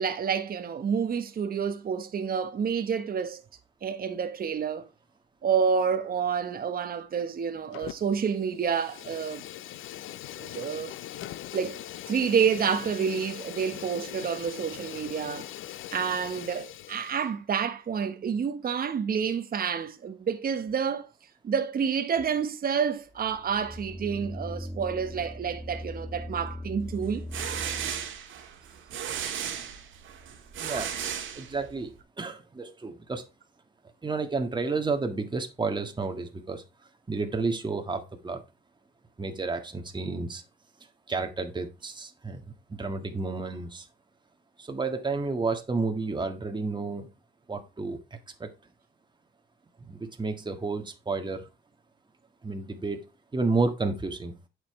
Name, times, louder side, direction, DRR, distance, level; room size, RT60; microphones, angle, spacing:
voice 1, 0.0-3.4 3.8-4.9 5.4-9.4 10.4-10.9 11.5-11.8 12.1-15.5 15.9-21.1 21.4-27.3, right 7 dB, 50° right, 1.2 m, -29 dB
Fire, 7.7-8.2 8.5-17.3, left 13 dB, 90° left, 0.7 m, -41 dB
sound 1, 23.1-28.1, left 1 dB, 5° right, 1.7 m, -39 dB
sound 2, 27.0-31.9, right 8 dB, 80° right, 1.8 m, -35 dB
voice 2, 30.6-30.9 31.4-33.3 34.0-36.6 37.1-38.4 39.2-40.4 41.1-42.4 42.7-43.9 44.6-47.1 47.5-48.5 49.8-51.5 52.4-53.1 53.3-54.3, right 3 dB, 20° right, 1.7 m, -31 dB
8.7 x 6.7 x 3.2 m
cardioid pair, 90°, 20 cm